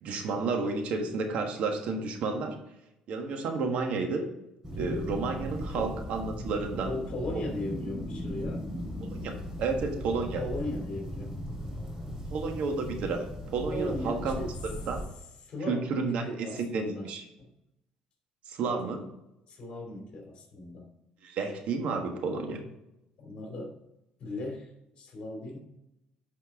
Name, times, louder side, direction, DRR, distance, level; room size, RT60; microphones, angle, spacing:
voice 1, 0.0-2.5 3.1-4.3 4.7-7.0 7.3-7.4 9.0-9.3 9.6-10.4 12.3-13.3 13.5-14.4 14.9-15.0 15.7-16.2 16.6-17.2 18.5-19.0 21.2-22.6, right 4 dB, 65° right, 4 dB, 1.4 m, -31 dB
sound 1, 4.6-15.0, equal, 20° right, 2.6 m, -37 dB
voice 2, 6.8-8.7 10.4-11.3 13.7-14.5 15.4-17.1 17.4-17.5 19.5-20.9 23.2-23.7 24.2-25.6, left 1 dB, 50° left, 2 dB, 2.7 m, -37 dB
10.0 x 4.5 x 3.6 m, 0.87 s
cardioid pair, 110°, 2 cm